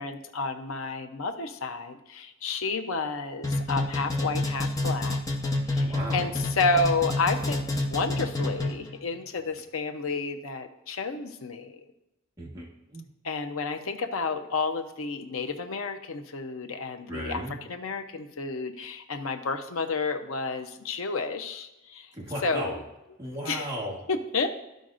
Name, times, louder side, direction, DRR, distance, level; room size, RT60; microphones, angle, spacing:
voice 1, 0.0-5.2 5.7-11.8 13.2-22.1 22.4-22.8 23.5-23.7 24.1-24.5, left 3 dB, 80° left, 6 dB, 0.7 m, -31 dB
sound 1, 3.4-9.0, left 2 dB, 15° left, 0.8 m, -28 dB
voice 2, 5.8-6.3 12.4-13.1 17.1-17.6 22.1-22.8 23.2-24.0, right 1 dB, 15° right, -4 dB, 1.4 m, -35 dB
13.5 x 5.2 x 2.5 m, 0.97 s
head